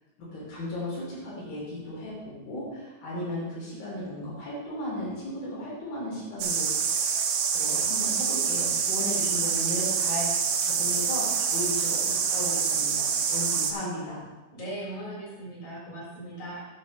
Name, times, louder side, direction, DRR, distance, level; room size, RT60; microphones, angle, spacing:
voice 1, 0.2-7.0 7.5-14.2, left 1 dB, 85° left, -6 dB, 5.0 m, -35 dB
sound 1, 6.4-13.7, right 6 dB, 85° right, 2.8 m, -26 dB
voice 2, 14.5-16.6, right 1 dB, 55° left, -5 dB, 4.9 m, -38 dB
9.2 x 6.7 x 5.4 m, 1.1 s
omnidirectional pair, 4.0 m